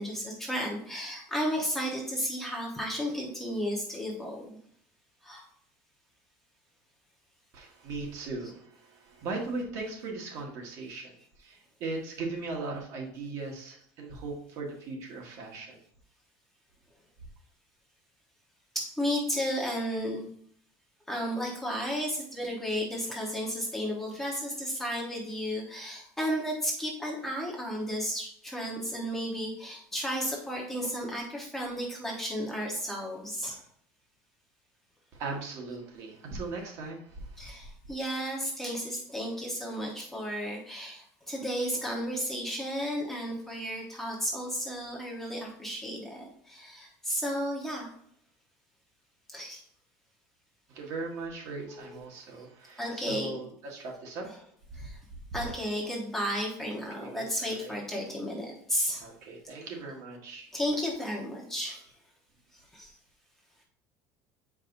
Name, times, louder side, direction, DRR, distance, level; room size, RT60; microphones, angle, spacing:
voice 1, 0.0-4.6 5.2-5.4 18.7-20.2 21.1-33.6 37.4-47.9 49.3-49.6 51.7-52.0 52.8-53.4 54.7-55.0 55.3-59.1 60.5-61.8 62.5-62.9, equal, 5° left, -3 dB, 1.1 m, -33 dB
voice 2, 7.5-15.8 35.1-37.5 50.7-54.3 54.7-54.9 57.0-57.8 59.0-60.5, right 3 dB, 50° right, 0 dB, 1.5 m, -38 dB
7.3 x 4.9 x 2.6 m, 0.64 s
cardioid pair, 170°, 7 cm